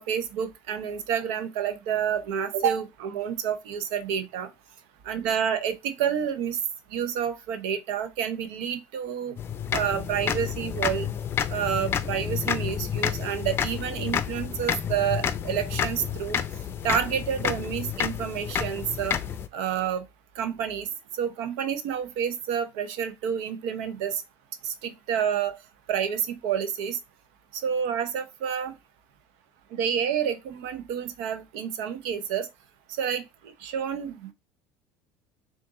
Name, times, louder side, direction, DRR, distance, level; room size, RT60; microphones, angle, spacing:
voice 1, 0.0-4.5 5.0-6.6 6.9-9.4 9.7-11.1 11.5-16.4 16.8-19.2 19.5-20.0 20.4-20.9 21.2-24.2 24.6-25.5 25.9-27.0 27.5-28.7 29.7-32.5 33.0-33.2 33.6-34.3, right 8 dB, 80° right, 0.8 m, -29 dB
sound 1, 9.4-19.5, left 8 dB, 35° left, 0.5 m, -30 dB
3.9 x 2.6 x 3.6 m
supercardioid pair, 100°, 6 cm